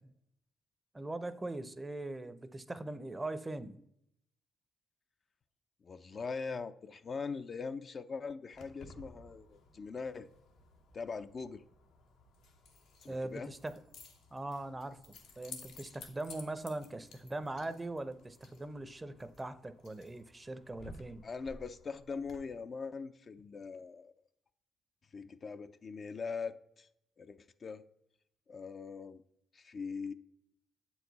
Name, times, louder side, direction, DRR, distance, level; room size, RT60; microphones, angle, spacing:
voice 1, 0.9-3.8 13.1-13.8 14.3-21.3, right 2 dB, 20° right, 0.5 m, -41 dB
voice 2, 5.8-10.3 10.9-11.6 13.0-13.5 21.2-24.1 25.1-26.9 27.2-27.8 28.5-29.2 29.5-30.1, left 5 dB, 45° left, 0.4 m, -41 dB
Keys jangling, 8.5-22.4, left 3 dB, 85° left, 1.0 m, -55 dB
7.5 x 4.7 x 4.0 m
cardioid pair, 75°, 0 cm